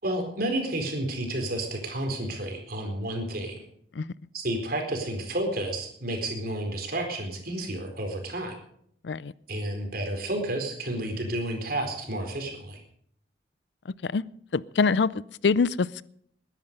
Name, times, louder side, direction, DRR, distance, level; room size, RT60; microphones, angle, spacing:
voice 1, 0.0-3.6 4.3-8.5 9.5-12.8, right 1 dB, 55° right, 4.3 m, -31 dB
voice 2, 14.5-15.1 15.4-16.1, left 4 dB, 75° left, 0.5 m, -24 dB
21.0 x 11.0 x 5.3 m
head